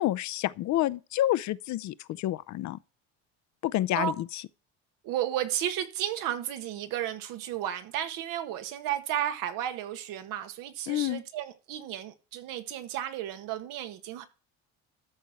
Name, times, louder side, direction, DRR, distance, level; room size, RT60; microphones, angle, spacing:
voice 1, 0.0-2.8 3.6-4.4 10.9-11.2, left 14 dB, 55° left, 0.7 m, -29 dB
voice 2, 5.0-14.2, right 11 dB, 75° right, 1.8 m, -33 dB
13.5 x 4.6 x 7.8 m
cardioid pair, 105°, 33 cm